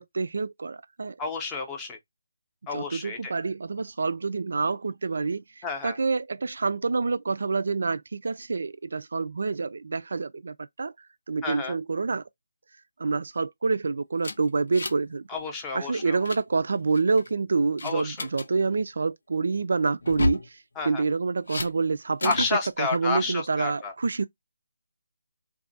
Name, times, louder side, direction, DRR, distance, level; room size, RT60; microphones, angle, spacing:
voice 1, 0.0-1.2 2.7-10.9 11.3-12.2 13.0-15.3 15.7-22.5 22.8-24.3, right 4 dB, 60° right, 0.3 m, -27 dB
voice 2, 1.2-2.0 2.7-3.3 5.6-6.0 11.4-11.8 15.3-16.2 17.8-18.3 20.8-21.0 22.2-23.9, left 4 dB, 10° left, 0.6 m, -31 dB
sound 1, 14.2-15.1 15.4-15.6 16.0-16.4 16.9-17.3 17.8-18.5 20.0-20.5 21.5-21.7 22.2-22.5, left 3 dB, 65° left, 0.6 m, -31 dB
2.6 x 2.4 x 3.8 m
hypercardioid pair, 170°, 0 cm